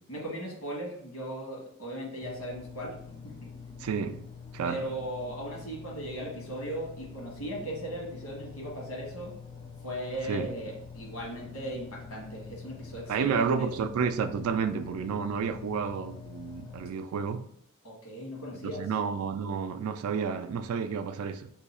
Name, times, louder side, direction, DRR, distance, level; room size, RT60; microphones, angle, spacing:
voice 1, 0.1-3.5 4.6-9.3 9.8-13.7 15.4-15.6 17.8-18.8, right 1 dB, 90° left, 1.3 m, -38 dB
sound 1, 2.2-16.9, left 5 dB, 20° left, 0.4 m, -46 dB
voice 2, 3.8-4.3 4.5-4.9 10.3-10.5 13.1-17.5 18.6-21.5, right 6 dB, 70° right, 0.3 m, -31 dB
2.7 x 2.3 x 4.2 m
head